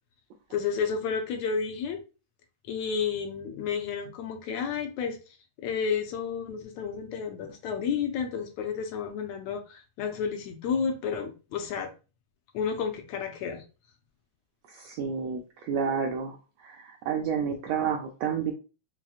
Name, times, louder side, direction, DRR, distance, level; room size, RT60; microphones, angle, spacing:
voice 1, 0.5-2.0 2.7-11.9 12.5-13.6, left 6 dB, 80° left, 4 dB, 1.7 m, -31 dB
voice 2, 14.7-16.3 16.6-18.5, right 6 dB, 80° right, 2 dB, 1.4 m, -30 dB
5.9 x 2.1 x 2.3 m, 0.33 s
omnidirectional pair, 3.3 m